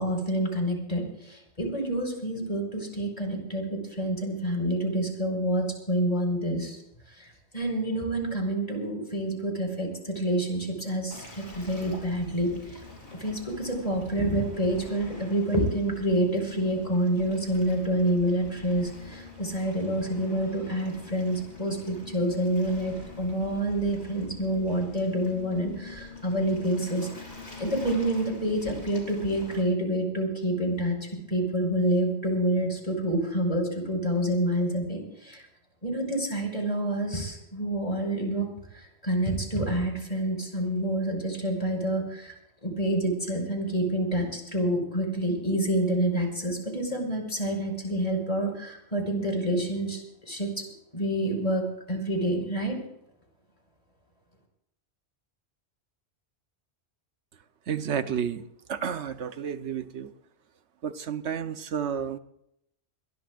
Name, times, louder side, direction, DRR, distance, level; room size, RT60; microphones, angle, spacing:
voice 1, 0.0-6.8 7.1-12.8 13.2-27.3 27.6-35.4 35.8-38.5 38.7-42.3 42.6-50.7 50.9-52.8, right 1 dB, 35° left, 1 dB, 5.2 m, -28 dB
Waves surf, 11.1-29.6, left 3 dB, 60° left, 4.9 m, -45 dB
voice 2, 57.7-60.1 60.8-62.2, right 8 dB, 85° right, 10 dB, 1.2 m, -31 dB
22.0 x 21.0 x 2.5 m, 0.76 s
omnidirectional pair, 1.1 m